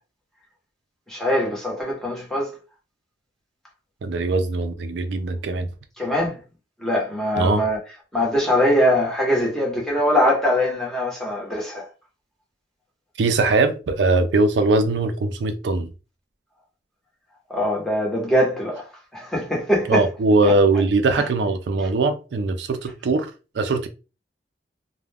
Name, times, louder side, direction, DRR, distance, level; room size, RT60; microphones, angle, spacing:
voice 1, 1.1-2.5 6.0-6.4 6.8-7.8 8.1-11.9 17.5-18.8 19.1-20.1 20.4-20.5, equal, 5° left, 1.0 m, -22 dB
voice 2, 4.0-5.7 7.4-7.6 13.2-15.9 19.9-23.9, right 3 dB, 80° right, 0.4 m, -21 dB
2.4 x 2.1 x 3.3 m
head